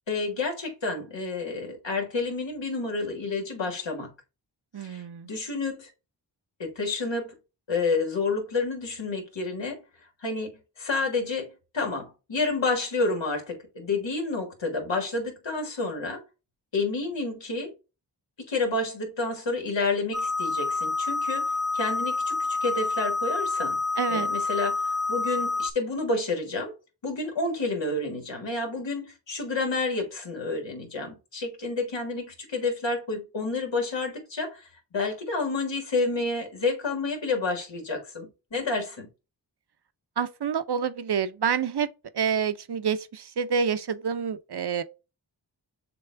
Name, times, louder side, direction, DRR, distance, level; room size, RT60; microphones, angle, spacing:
voice 1, 0.1-4.1 4.8-5.9 6.6-7.3 7.7-9.8 10.2-10.5 10.8-16.2 16.7-17.7 18.5-23.8 24.1-26.7 27.0-39.1, left 3 dB, 90° left, 1.7 m, -29 dB
voice 2, 4.7-5.3 24.0-24.3 40.2-41.9 42.1-44.8, right 7 dB, 65° right, 0.7 m, -28 dB
sound 1, 20.1-25.7, left 3 dB, ahead, 0.3 m, -28 dB
6.9 x 2.4 x 3.3 m
cardioid pair, 45°, 43 cm